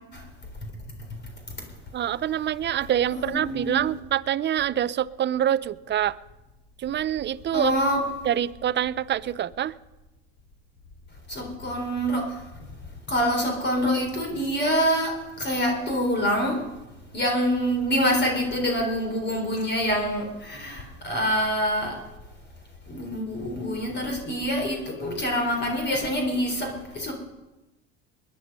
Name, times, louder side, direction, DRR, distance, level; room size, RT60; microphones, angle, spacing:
voice 1, 1.9-6.2 6.8-7.7 8.3-9.7, right 10 dB, 35° right, 18 dB, 0.5 m, -25 dB
voice 2, 3.1-3.9 7.5-8.0 11.3-12.4 13.1-16.7 17.1-22.0 22.9-27.1, equal, 30° left, 3 dB, 3.9 m, -26 dB
21.0 x 10.5 x 5.4 m, 1.0 s
supercardioid pair, 95°, 34 cm